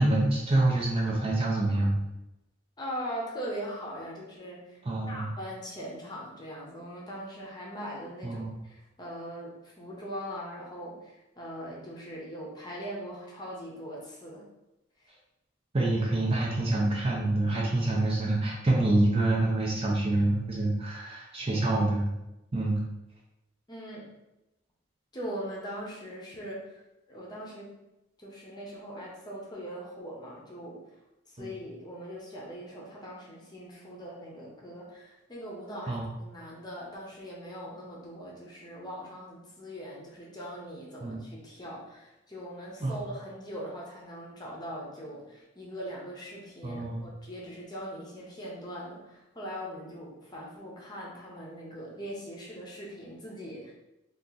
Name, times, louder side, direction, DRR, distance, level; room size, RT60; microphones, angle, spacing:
voice 1, 0.0-2.0 4.9-5.3 8.2-8.5 15.7-22.1 22.5-22.8 31.4-31.5 35.9-36.0 41.0-41.2 42.8-43.0 46.6-47.0, right 2 dB, 30° right, -3 dB, 0.5 m, -26 dB
voice 2, 2.8-4.8 5.1-14.4 15.0-15.1 23.7-24.1 25.1-27.7 28.2-30.8 31.3-53.7, equal, 20° left, -4 dB, 0.8 m, -41 dB
2.9 x 2.5 x 3.8 m, 0.94 s
head